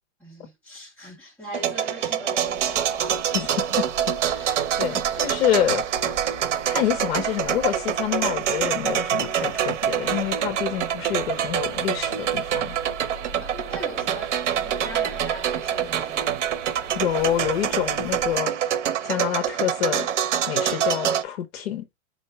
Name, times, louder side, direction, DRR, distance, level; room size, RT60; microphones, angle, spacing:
voice 1, 0.2-3.4 13.4-16.4, equal, 5° left, 1.6 m, -40 dB
sound 1, 1.5-21.2, right 9 dB, 75° right, 0.9 m, -26 dB
sound 2, 2.4-18.4, right 3 dB, 45° right, 3.0 m, -44 dB
voice 2, 3.3-5.8 6.7-12.8 16.9-18.5 19.0-20.1 20.5-21.9, left 11 dB, 55° left, 0.9 m, -27 dB
4.7 x 2.6 x 4.3 m
hypercardioid pair, 165°, 36 cm